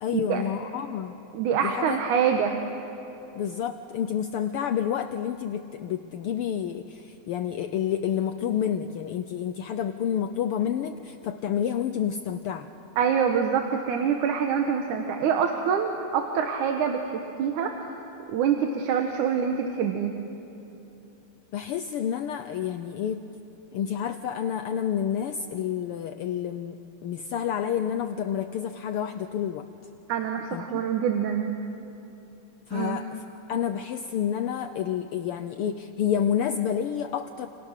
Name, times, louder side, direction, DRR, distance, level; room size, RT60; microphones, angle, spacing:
voice 1, 0.0-1.2 1.6-2.0 3.4-12.7 21.5-23.2 23.7-29.6 30.5-30.8 32.7-37.5, left 9 dB, 85° left, 9 dB, 1.2 m, -29 dB
voice 2, 1.3-2.6 13.0-17.9 18.3-20.1 30.1-31.5 32.7-33.0, right 7 dB, 85° right, 4 dB, 2.7 m, -25 dB
29.0 x 28.0 x 6.6 m, 3.0 s
omnidirectional pair, 3.4 m